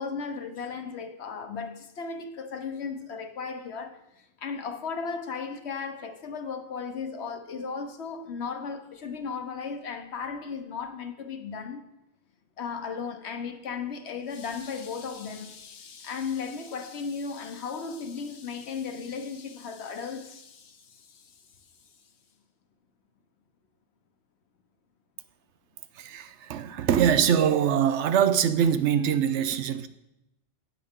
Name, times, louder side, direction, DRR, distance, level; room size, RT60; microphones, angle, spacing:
voice 1, 0.0-4.0 4.4-11.8 12.6-21.0, left 5 dB, 70° left, 1.3 m, -35 dB
voice 2, 26.0-29.9, right 8 dB, 90° right, 0.9 m, -23 dB
17.5 x 6.8 x 3.7 m
omnidirectional pair, 1.2 m